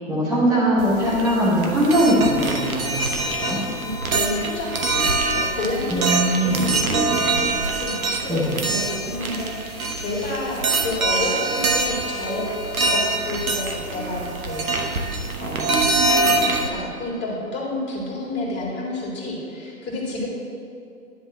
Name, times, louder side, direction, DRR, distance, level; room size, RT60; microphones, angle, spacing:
voice 1, 0.1-3.6 5.9-6.7 8.3-8.5, equal, ahead, -13 dB, 0.3 m, -21 dB
sound 1, 0.8-16.7, right 2 dB, 80° right, 1.1 m, -24 dB
voice 2, 3.8-12.5 12.8-14.7 15.4-20.3, left 2 dB, 25° left, -4 dB, 2.1 m, -30 dB
10.5 x 3.5 x 7.2 m, 2.5 s
figure-of-eight pair, 110°, 42 cm